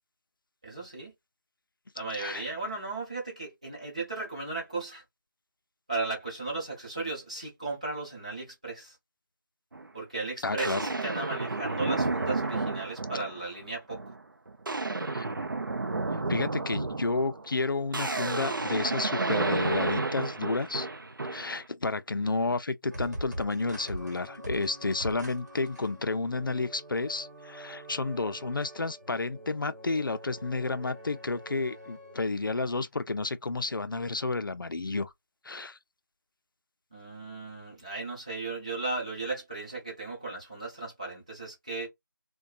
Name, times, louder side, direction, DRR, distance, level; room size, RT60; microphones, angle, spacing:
voice 1, 0.6-1.1 1.9-5.0 5.9-9.0 9.9-14.0 22.4-22.6 36.9-41.9, right 3 dB, 20° right, 0.8 m, -36 dB
voice 2, 2.1-2.4 10.4-10.8 15.1-15.3 16.3-20.9 21.3-35.1 35.4-35.8, left 3 dB, 80° left, 0.4 m, -31 dB
sound 1, 9.7-9.9 10.6-13.5 13.9-14.2 14.5-21.6, right 3 dB, 75° right, 0.5 m, -31 dB
sound 2, 22.9-32.3, right 1 dB, 55° right, 1.0 m, -43 dB
2.6 x 2.2 x 2.3 m
figure-of-eight pair, 175°, 11 cm